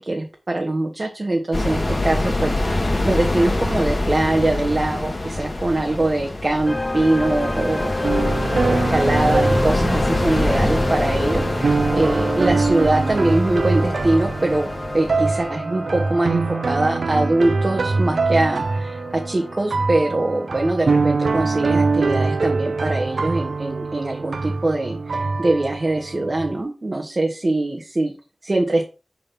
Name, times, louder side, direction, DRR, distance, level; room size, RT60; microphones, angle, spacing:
voice 1, 0.0-8.2 8.5-14.7 14.9-28.1 28.4-28.9, right 2 dB, 45° right, 1 dB, 1.3 m, -22 dB
sound 1, 1.5-15.5, left 2 dB, 50° left, 2.3 m, -25 dB
sound 2, 6.7-23.6, left 2 dB, 30° left, 0.5 m, -31 dB
sound 3, 8.0-26.6, right 3 dB, 85° right, 0.5 m, -24 dB
6.9 x 3.9 x 5.9 m, 0.32 s
wide cardioid pair, 50°, 0 cm